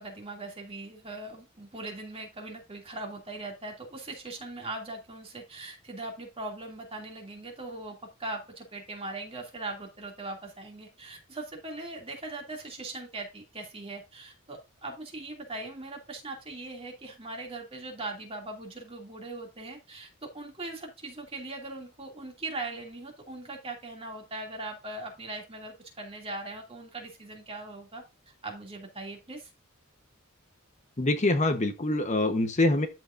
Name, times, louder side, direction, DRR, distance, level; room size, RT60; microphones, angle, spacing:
voice 1, 0.0-28.0 28.4-29.5, right 2 dB, 25° right, 1 dB, 2.6 m, -40 dB
voice 2, 31.0-32.9, left 2 dB, 35° left, 7 dB, 1.0 m, -25 dB
13.0 x 4.9 x 2.6 m, 0.28 s
head